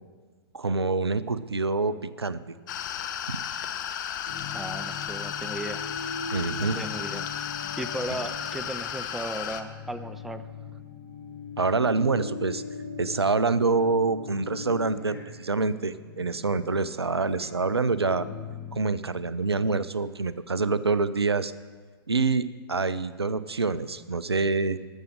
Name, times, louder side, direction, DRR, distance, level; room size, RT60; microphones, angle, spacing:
voice 1, 0.5-2.4 3.3-3.4 6.3-6.8 11.6-12.6 13.0-18.3 18.7-21.5 22.1-24.8, right 4 dB, 85° right, 16 dB, 0.5 m, -26 dB
sound 1, 2.7-9.6, left 9 dB, 50° left, 0.9 m, -34 dB
sound 2, 4.2-19.4, left 4 dB, 70° left, 3.2 m, -40 dB
voice 2, 4.5-5.9 6.6-7.3 7.8-10.4, right 1 dB, ahead, 11 dB, 0.4 m, -36 dB
13.0 x 7.2 x 6.5 m, 1.5 s
figure-of-eight pair, 105°, 13 cm